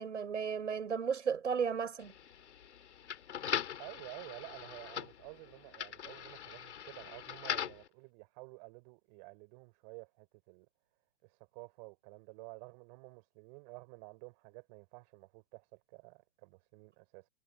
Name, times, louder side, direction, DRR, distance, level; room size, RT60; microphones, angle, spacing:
voice 1, 0.0-2.1, right 6 dB, 75° right, 6.6 m, -34 dB
sound 1, 2.0-7.9, left 9 dB, 65° left, 3.1 m, -41 dB
voice 2, 3.8-10.7 11.2-17.3, right 32 dB, 35° right, 6.4 m, -52 dB
hypercardioid pair, 130°, 36 cm